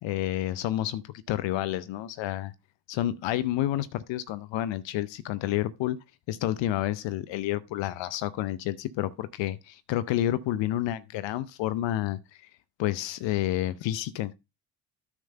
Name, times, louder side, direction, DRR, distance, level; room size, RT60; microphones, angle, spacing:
voice 1, 0.0-2.5 2.9-6.0 6.3-12.2 12.8-14.3, left 13 dB, 65° left, 0.7 m, -29 dB
9.7 x 3.3 x 6.6 m
hypercardioid pair, 55°, 48 cm